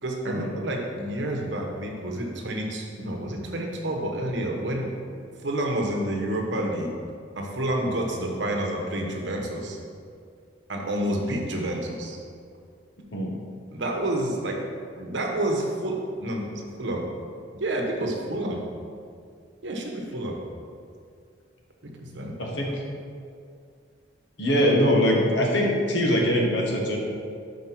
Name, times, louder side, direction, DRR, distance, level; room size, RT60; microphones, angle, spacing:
voice 1, 0.0-4.9 5.4-6.9 7.3-9.8 10.7-12.2 13.7-14.6 14.9-17.1 17.5-18.6 19.6-20.4 22.0-22.3, right 1 dB, 70° right, 0 dB, 1.1 m, -29 dB
voice 2, 22.4-22.7 24.4-27.0, equal, 70° left, -1 dB, 1.3 m, -22 dB
5.2 x 5.2 x 5.9 m, 2.3 s
head